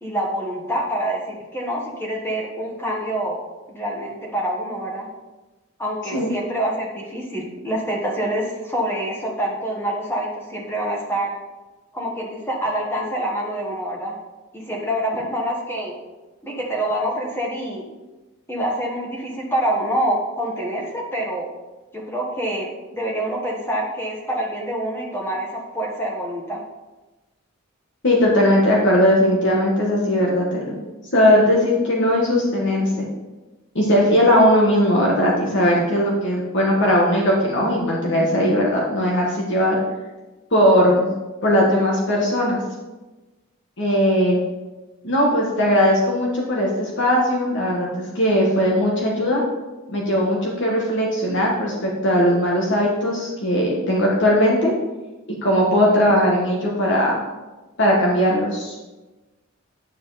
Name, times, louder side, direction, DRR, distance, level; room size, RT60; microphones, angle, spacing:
voice 1, 0.0-3.4 3.7-5.1 5.8-11.3 11.9-14.2 14.5-15.9 16.4-17.8 18.5-21.5 21.9-26.6, right 1 dB, 10° left, -2 dB, 1.4 m, -26 dB
voice 2, 28.0-30.7 31.1-33.0 33.7-39.8 40.5-41.1 41.4-42.6 43.8-44.4 45.0-49.4 49.9-54.7 55.4-57.2 57.8-58.7, equal, 55° left, -3 dB, 1.6 m, -19 dB
9.6 x 7.2 x 4.1 m, 1.1 s
head